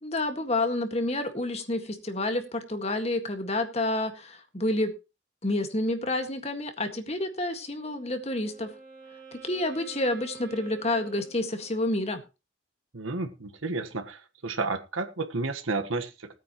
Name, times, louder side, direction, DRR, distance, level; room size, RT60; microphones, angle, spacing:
voice 1, 0.0-4.9 5.4-8.7 9.3-12.2, left 1 dB, 30° left, 7 dB, 1.8 m, -29 dB
Wind instrument woodwind instrument, 7.6-12.0, right 7 dB, 45° right, 7.7 m, -49 dB
voice 2, 12.9-16.3, right 3 dB, 90° right, 8 dB, 1.4 m, -31 dB
19.5 x 9.3 x 3.1 m, 0.29 s
head